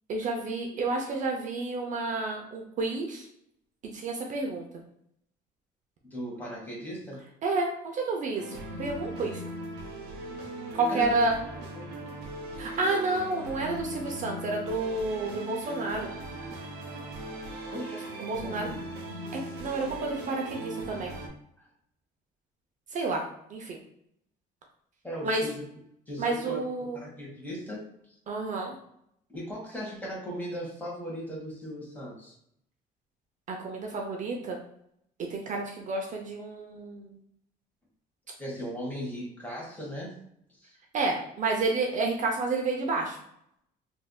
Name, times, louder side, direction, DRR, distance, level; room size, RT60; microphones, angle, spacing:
voice 1, 0.1-3.3 3.9-4.6 7.4-9.4 10.7-11.3 12.6-16.1 18.2-18.7 19.3-21.1 22.9-23.2 23.5-23.8 25.2-25.4 26.2-27.0 28.3-28.7 33.5-34.6 35.3-37.1 40.9-43.2, right 3 dB, 50° right, 1 dB, 0.6 m, -30 dB
voice 2, 6.0-7.2 10.9-11.2 11.7-11.9 17.7-18.8 25.0-25.6 26.1-26.7 26.9-27.9 29.3-32.3 38.4-40.1 40.6-40.7, equal, 10° left, -4 dB, 1.3 m, -38 dB
sound 1, 8.4-21.3, right 2 dB, 85° right, 0.6 m, -39 dB
3.3 x 2.6 x 2.3 m, 0.72 s
cardioid pair, 110°, 17 cm